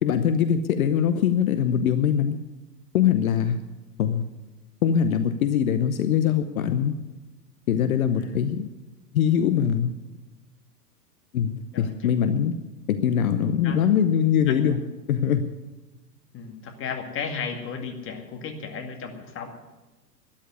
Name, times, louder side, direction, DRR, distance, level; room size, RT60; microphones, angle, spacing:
voice 1, 0.0-2.4 2.9-3.6 4.0-4.2 4.8-7.0 7.7-8.7 9.1-9.9 11.3-12.5 12.9-14.8 15.1-15.5, left 8 dB, 60° left, 10 dB, 1.0 m, -22 dB
voice 2, 11.7-12.2 13.6-13.9 14.5-14.9 16.3-19.5, left 6 dB, 25° left, 4 dB, 2.3 m, -34 dB
13.0 x 10.5 x 9.5 m, 1.1 s
figure-of-eight pair, 105°, 48 cm